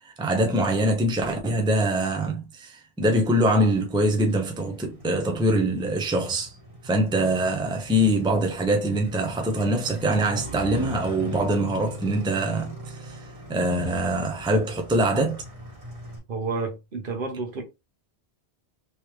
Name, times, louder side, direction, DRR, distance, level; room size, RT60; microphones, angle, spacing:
voice 1, 0.0-6.5 6.8-13.2 13.5-15.4, right 1 dB, 5° right, 0.6 m, -24 dB
Motorcycle, 3.6-16.2, equal, 30° right, 1.7 m, -41 dB
voice 2, 16.3-17.6, right 4 dB, 55° right, 1.0 m, -30 dB
3.4 x 3.0 x 3.1 m
omnidirectional pair, 1.1 m